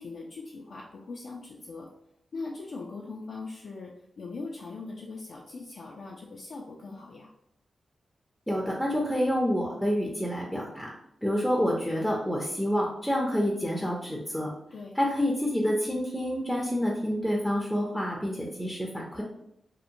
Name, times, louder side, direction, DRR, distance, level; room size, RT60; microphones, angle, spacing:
voice 1, 0.0-1.9 2.3-7.3 14.7-15.0, left 3 dB, 70° left, -2 dB, 0.3 m, -40 dB
voice 2, 8.5-10.9 11.2-14.5 15.0-19.2, equal, ahead, -2 dB, 0.5 m, -28 dB
2.8 x 2.1 x 2.5 m, 0.78 s
cardioid pair, 75°, 0 cm